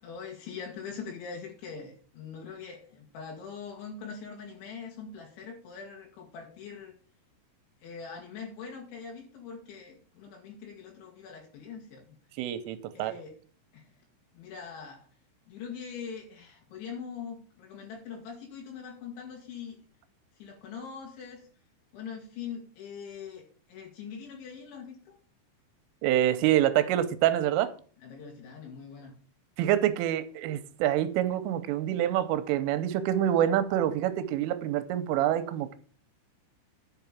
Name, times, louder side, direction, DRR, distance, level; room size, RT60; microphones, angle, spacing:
voice 1, 0.0-7.0 7.8-12.2 12.9-13.3 13.7-13.9 14.3-15.1 15.5-19.8 20.4-21.5 21.9-25.2 28.0-29.1, left 6 dB, 70° left, 3.9 m, -42 dB
voice 2, 12.4-13.1 26.0-27.7 29.6-35.8, right 11 dB, 90° right, 3.3 m, -26 dB
11.0 x 5.9 x 7.1 m
omnidirectional pair, 5.8 m